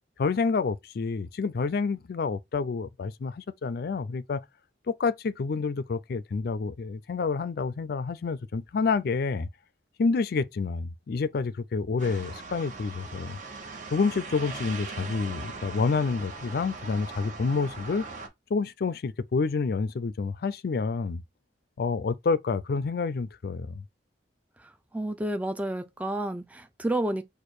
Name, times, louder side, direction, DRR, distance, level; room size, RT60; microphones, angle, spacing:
voice 1, 0.2-4.4 4.9-9.5 10.0-13.4 13.9-18.1 18.5-21.2 21.8-23.8, left 4 dB, 60° left, 0.4 m, -28 dB
sound 1, 12.0-18.3, right 4 dB, 45° right, 1.1 m, -40 dB
voice 2, 24.6-27.2, right 1 dB, 10° right, 0.5 m, -31 dB
4.3 x 2.5 x 4.7 m
head